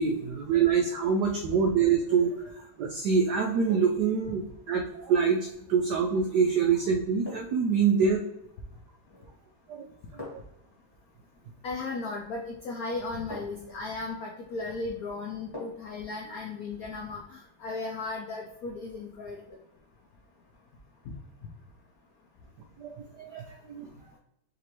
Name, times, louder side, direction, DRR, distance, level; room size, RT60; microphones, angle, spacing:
voice 1, 0.0-8.2 9.7-9.8 10.3-10.4 22.8-23.9, right 6 dB, 85° right, 3 dB, 0.9 m, -26 dB
sound 1, 2.2-2.5 3.7-4.1 6.2-6.4 7.2-7.7 9.0-9.4 10.2-10.6 12.3-12.4 13.3-13.8 15.5-16.0 16.4-16.5, left 2 dB, 15° left, 1.1 m, -44 dB
voice 2, 11.6-19.4 21.1-21.2, left 3 dB, 85° left, -1 dB, 0.8 m, -36 dB
5.0 x 2.9 x 3.0 m, 0.79 s
omnidirectional pair, 2.4 m